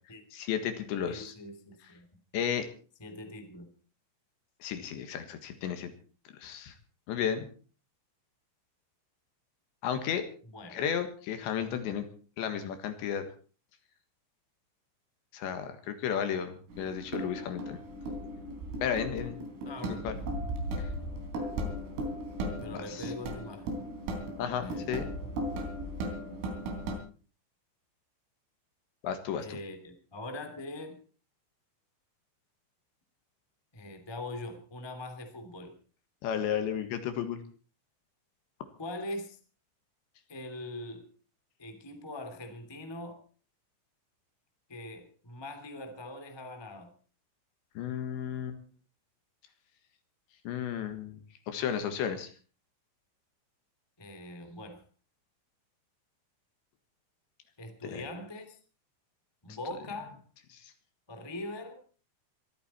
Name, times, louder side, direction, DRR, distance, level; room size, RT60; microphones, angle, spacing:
voice 1, 0.3-1.3 2.3-2.7 4.6-5.9 6.4-6.7 7.1-7.5 9.8-10.2 10.7-12.1 12.4-13.2 15.3-17.8 18.8-19.4 20.1-20.2 20.8-20.9 22.7-23.1 24.4-25.1 29.0-29.6 36.2-37.4 47.8-48.6 50.5-51.2 51.5-52.3 57.8-58.0, left 8 dB, 70° left, 9 dB, 3.7 m, -33 dB
voice 2, 1.1-2.1 3.0-3.7 10.5-10.9 19.6-20.0 22.6-23.8 24.6-25.0 29.4-31.0 33.7-35.8 38.8-39.4 40.3-41.1 41.6-43.2 44.7-46.9 54.0-54.8 57.6-58.6 59.4-60.2 61.1-61.8, left 1 dB, 10° left, 6 dB, 1.2 m, -42 dB
sound 1, 16.7-27.0, right 1 dB, 80° right, 6.1 m, -37 dB
23.0 x 14.0 x 4.4 m, 0.40 s
omnidirectional pair, 5.8 m